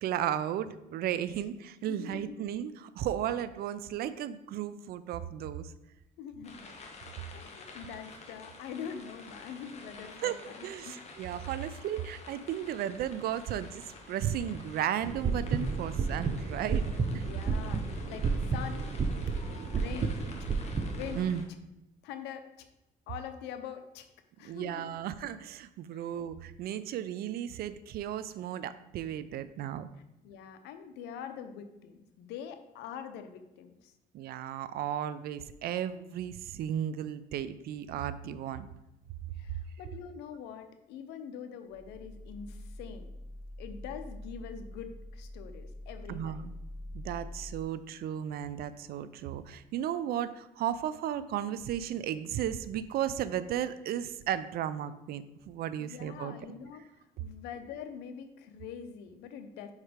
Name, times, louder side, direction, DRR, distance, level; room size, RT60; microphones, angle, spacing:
voice 1, 0.0-5.7 10.2-10.4 10.6-17.3 21.1-21.4 24.4-29.9 34.1-38.7 46.1-46.5 46.9-56.4, right 10 dB, 65° right, 14 dB, 0.5 m, -34 dB
voice 2, 1.9-2.4 6.2-6.8 7.3-11.0 11.6-11.7 17.1-18.9 19.2-19.3 19.8-20.5 20.9-21.2 22.0-22.7 23.1-24.1 24.4-24.9 25.9-26.1 30.2-33.9 39.3-43.1 43.6-46.4 55.8-59.7, left 8 dB, 90° left, 8 dB, 0.7 m, -44 dB
sound 1, 6.4-21.4, left 3 dB, 40° left, 1.3 m, -50 dB
sound 2, 15.0-21.2, right 4 dB, 35° right, 0.7 m, -32 dB
sound 3, 41.7-47.6, left 1 dB, 10° right, 2.4 m, -45 dB
5.5 x 4.8 x 5.0 m, 0.90 s
cardioid pair, 110°, 17 cm